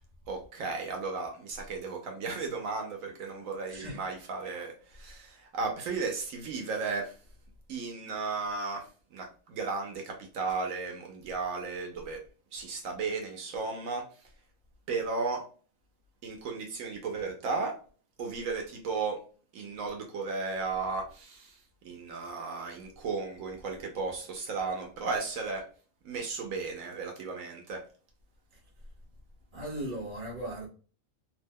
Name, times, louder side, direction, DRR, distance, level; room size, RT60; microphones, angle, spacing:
voice 1, 0.3-7.2 7.7-12.2 12.5-14.3 14.9-15.4 16.2-17.8 18.2-19.2 19.5-25.7 26.0-27.8, right 4 dB, 80° right, 1.0 m, -35 dB
voice 2, 3.7-4.0 29.5-30.7, right 1 dB, 40° right, 1.1 m, -37 dB
2.8 x 2.1 x 3.4 m
omnidirectional pair, 1.4 m